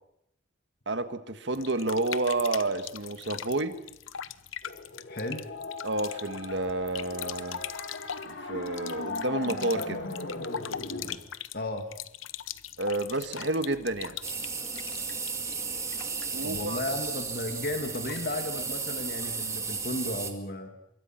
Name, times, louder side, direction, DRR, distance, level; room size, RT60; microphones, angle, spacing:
voice 1, 0.8-3.8 5.8-7.6 8.2-10.0 12.8-14.2 16.3-16.8, right 2 dB, 65° right, 10 dB, 1.7 m, -30 dB
sound 1, 1.5-18.4, left 10 dB, 90° left, 0.9 m, -42 dB
sound 2, 4.6-11.2, left 2 dB, 65° left, 3.1 m, -38 dB
voice 2, 5.1-5.5 11.5-11.9 16.4-20.7, left 1 dB, 50° left, 6 dB, 2.1 m, -34 dB
sound 3, 14.2-20.3, right 5 dB, 15° right, 2.0 m, -34 dB
26.0 x 23.0 x 5.9 m, 0.76 s
head